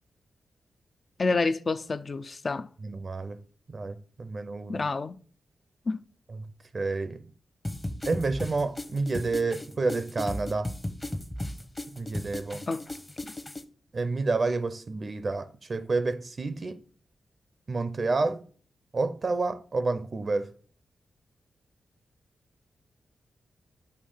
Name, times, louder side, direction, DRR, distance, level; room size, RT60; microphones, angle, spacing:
voice 1, 1.2-2.7 4.7-5.2 5.9-6.0 12.7-12.8, left 3 dB, 50° left, 0.4 m, -28 dB
voice 2, 2.8-3.4 3.7-4.8 6.3-6.5 6.7-7.2 8.1-10.7 11.9-12.6 13.9-16.8 17.7-18.4 18.9-20.5, right 3 dB, 50° right, 0.5 m, -29 dB
sound 1, 7.6-13.6, left 1 dB, 25° left, 0.8 m, -36 dB
6.5 x 2.8 x 5.5 m
supercardioid pair, 45°, 0 cm